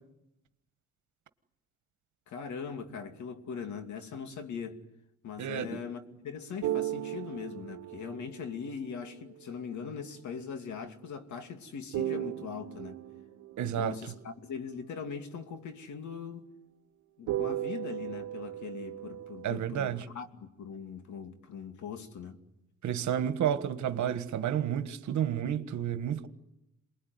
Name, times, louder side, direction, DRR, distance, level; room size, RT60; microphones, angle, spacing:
voice 1, 2.3-4.8 5.2-13.0 13.6-16.5 17.2-22.4, left 6 dB, 70° left, 2.6 m, -41 dB
voice 2, 5.4-5.8 13.6-14.0 19.4-20.1 22.8-26.3, right 9 dB, 70° right, 1.6 m, -31 dB
sound 1, 6.6-9.4 11.9-14.2 17.3-19.6, right 13 dB, 90° right, 1.2 m, -36 dB
27.5 x 21.0 x 9.6 m
cardioid pair, 90°, 30 cm